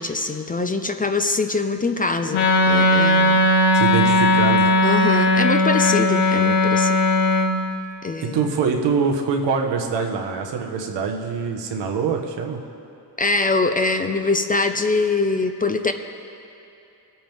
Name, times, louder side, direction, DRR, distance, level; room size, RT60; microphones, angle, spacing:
voice 1, 0.0-3.4 4.8-7.0 8.0-8.5 13.2-15.9, left 3 dB, 20° left, 7 dB, 0.5 m, -23 dB
Wind instrument woodwind instrument, 2.3-7.5, left 1 dB, 60° left, 1.5 m, -17 dB
voice 2, 3.7-4.7 8.2-12.6, right 5 dB, 90° right, 2 dB, 1.4 m, -24 dB
21.5 x 8.7 x 3.5 m, 2.7 s
cardioid pair, 95°, 41 cm